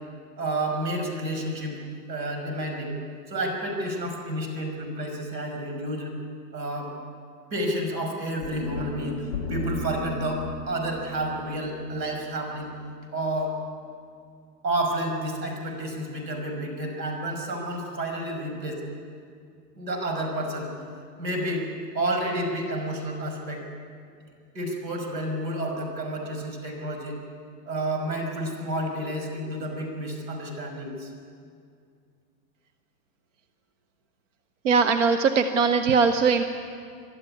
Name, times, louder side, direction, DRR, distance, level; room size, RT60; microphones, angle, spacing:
voice 1, 0.4-1.8 2.1-2.9 3.3-6.1 6.5-7.0 7.5-12.7 13.1-13.6 14.6-18.8 19.8-20.7 21.2-21.7 21.9-23.6 24.5-27.2 27.7-31.1, right 1 dB, 80° right, 3 dB, 5.7 m, -30 dB
sound 1, 8.4-12.6, left 2 dB, 15° left, 0.5 m, -35 dB
voice 2, 34.6-36.4, right 5 dB, 50° right, 9 dB, 0.9 m, -20 dB
23.0 x 12.5 x 9.7 m, 2.2 s
hypercardioid pair, 175°, 50 cm